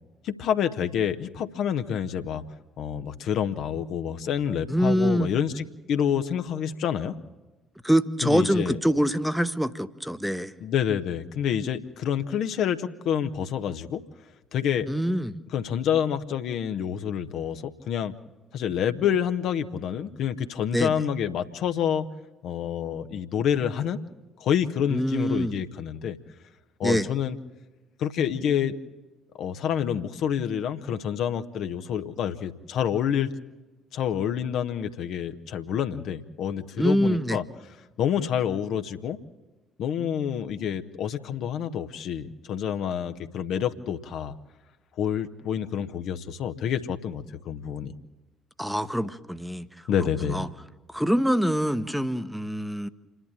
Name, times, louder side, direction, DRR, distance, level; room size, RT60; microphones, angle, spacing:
voice 1, 0.2-2.4 2.8-7.2 8.2-8.8 10.6-14.0 14.5-14.9 15.5-18.2 18.5-22.0 22.4-24.0 24.4-26.2 26.8-27.4 28.0-28.7 29.4-33.3 33.9-37.4 38.0-39.2 39.8-44.3 45.0-47.9 49.9-50.5, left 8 dB, 55° left, 8 dB, 0.9 m, -28 dB
voice 2, 4.7-5.3 7.8-10.5 14.9-15.4 20.7-20.9 24.9-25.6 26.8-27.1 36.8-37.4 48.6-49.7 50.3-50.5 50.9-52.9, equal, ahead, 12 dB, 1.0 m, -24 dB
27.5 x 11.5 x 8.8 m, 1.2 s
figure-of-eight pair, 50°, 0 cm